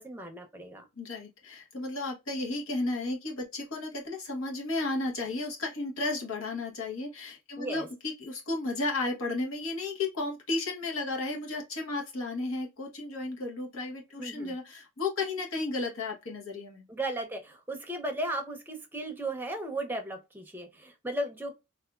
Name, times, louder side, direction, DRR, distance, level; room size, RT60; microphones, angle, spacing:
voice 1, 0.0-0.8 7.6-7.9 14.2-14.5 16.9-21.5, right 1 dB, 10° right, 0.6 m, -35 dB
voice 2, 1.0-16.8, left 2 dB, 80° left, 1.1 m, -33 dB
3.4 x 2.5 x 2.3 m
head